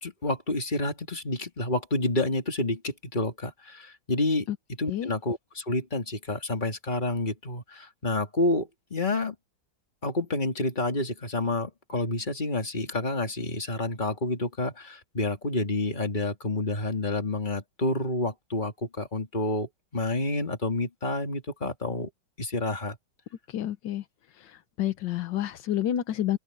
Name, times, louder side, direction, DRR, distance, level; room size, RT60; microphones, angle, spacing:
voice 1, 0.0-4.5 4.8-9.3 10.0-22.1 22.4-23.0, left 2 dB, 25° left, 2.9 m, -29 dB
voice 2, 23.5-24.0 24.4-26.4, left 11 dB, 85° left, 1.6 m, -29 dB
open air
omnidirectional pair, 1.9 m